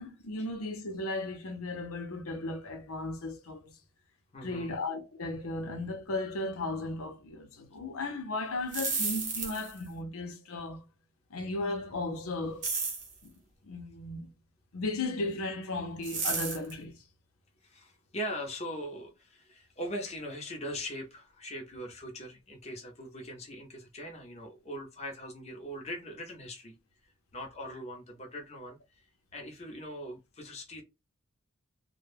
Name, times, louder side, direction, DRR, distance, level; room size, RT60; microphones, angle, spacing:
voice 1, 0.0-3.7 4.4-10.8 11.3-12.7 13.2-13.3 13.6-14.3 14.7-17.0, left 2 dB, 85° left, 0.6 m, -36 dB
voice 2, 4.3-4.7 17.6-26.7 27.3-28.8 29.3-30.8, equal, 30° left, 0.7 m, -41 dB
sound 1, 8.6-9.8 12.6-13.1 16.0-16.7, right 4 dB, 35° right, 0.8 m, -32 dB
2.2 x 2.1 x 3.2 m
head